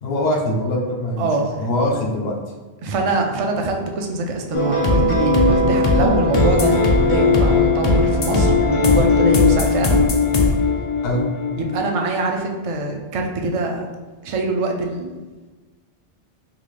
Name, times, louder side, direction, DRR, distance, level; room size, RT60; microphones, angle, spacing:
voice 1, 0.0-1.3 1.5-2.4 5.6-5.7 11.0-11.2, left 1 dB, 80° left, 1 dB, 0.9 m, -22 dB
voice 2, 2.8-10.1 11.6-13.8 14.2-15.2, right 2 dB, 50° right, 2 dB, 0.4 m, -23 dB
sound 1, 4.5-11.9, left 3 dB, 50° left, 0.4 m, -17 dB
3.8 x 2.4 x 3.1 m, 1.3 s
omnidirectional pair, 1.0 m